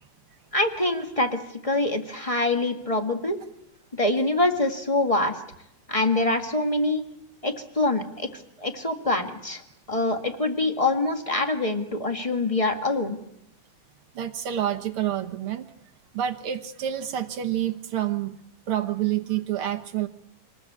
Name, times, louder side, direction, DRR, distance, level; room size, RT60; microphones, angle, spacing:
voice 1, 0.5-3.4 3.9-5.4 5.9-7.0 7.4-9.6 9.9-13.2, left 2 dB, 20° left, 5 dB, 0.9 m, -25 dB
voice 2, 14.1-15.7 16.1-18.3 18.7-20.1, right 11 dB, 65° right, 6 dB, 1.4 m, -28 dB
26.5 x 20.0 x 8.6 m, 0.80 s
omnidirectional pair, 3.7 m